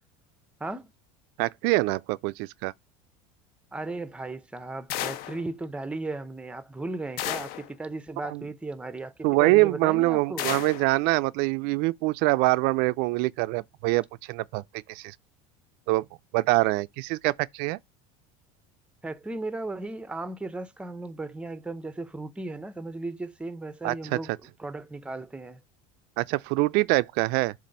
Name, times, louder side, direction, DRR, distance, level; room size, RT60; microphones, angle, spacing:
voice 1, 0.6-0.9 3.7-10.5 19.0-24.3 24.6-25.6, right 2 dB, 5° right, 0.6 m, -36 dB
voice 2, 1.4-2.7 8.2-8.4 9.2-14.6 14.9-15.2 15.9-16.1 16.3-17.8 23.8-24.2 26.2-27.5, right 21 dB, 60° right, 0.4 m, -24 dB
sound 1, 4.9-5.4 7.2-7.7 10.4-10.9, left 12 dB, 55° left, 0.9 m, -32 dB
7.3 x 2.5 x 5.3 m
supercardioid pair, 125°, 18 cm